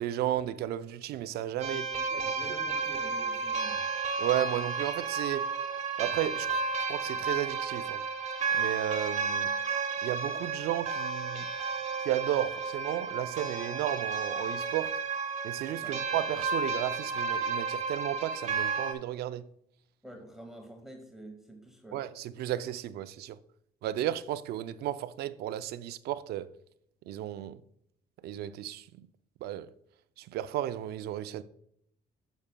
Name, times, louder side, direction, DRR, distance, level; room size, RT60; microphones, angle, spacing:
voice 1, 0.0-1.9 4.2-5.5 6.0-6.6 6.9-8.0 8.5-9.5 10.0-11.5 12.0-14.9 15.4-19.5 21.9-23.4 23.8-26.5 27.1-27.6 28.2-29.1 29.4-29.7 30.2-31.4, right 12 dB, 70° right, 0.4 m, -33 dB
sound 1, 1.6-18.9, right 5 dB, 40° right, 1.1 m, -32 dB
voice 2, 1.7-3.9 15.8-16.0 20.0-22.0, right 1 dB, ahead, 1.0 m, -48 dB
8.8 x 7.0 x 2.2 m
cardioid pair, 110°, 17 cm